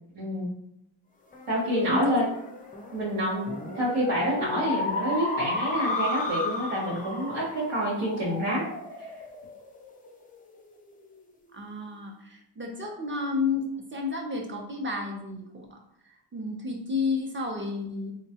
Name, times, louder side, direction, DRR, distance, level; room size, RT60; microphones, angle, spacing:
voice 1, 0.1-0.5 1.5-2.3 2.9-8.6, equal, 80° right, -6 dB, 1.1 m, -27 dB
sound 1, 1.3-10.2, left 2 dB, 20° left, 0.3 m, -34 dB
voice 2, 1.8-2.2 11.5-15.8 16.3-18.1, left 3 dB, 25° right, 0 dB, 0.6 m, -31 dB
3.7 x 2.2 x 2.8 m, 0.79 s
wide cardioid pair, 125°, 49 cm